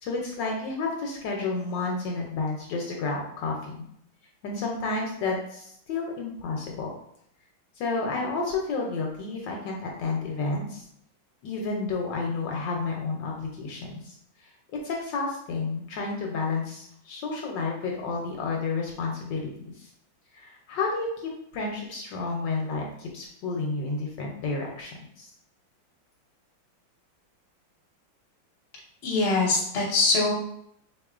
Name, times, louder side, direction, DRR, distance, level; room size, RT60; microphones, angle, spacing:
voice 1, 0.0-3.8 4.4-6.9 7.8-10.9 11.4-14.1 14.4-19.9 20.3-25.3, left 3 dB, 75° left, 0 dB, 1.2 m, -31 dB
voice 2, 29.0-30.3, left 3 dB, 45° left, -3 dB, 0.8 m, -23 dB
4.0 x 3.0 x 2.3 m, 0.71 s
omnidirectional pair, 2.2 m